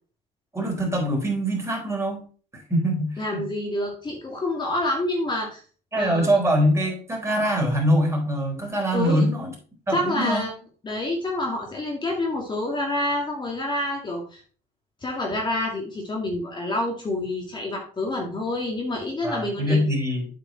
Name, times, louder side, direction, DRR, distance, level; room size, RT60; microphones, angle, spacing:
voice 1, 0.5-2.2 2.5-3.5 5.9-9.5 9.9-10.4 19.2-20.3, equal, 15° right, -1 dB, 4.1 m, -23 dB
voice 2, 3.2-5.6 5.9-6.4 8.9-9.2 9.9-10.5 10.8-14.4 15.0-19.9, left 1 dB, 25° left, 0 dB, 2.1 m, -27 dB
8.4 x 5.4 x 4.3 m, 0.40 s
cardioid pair, 110°, 17 cm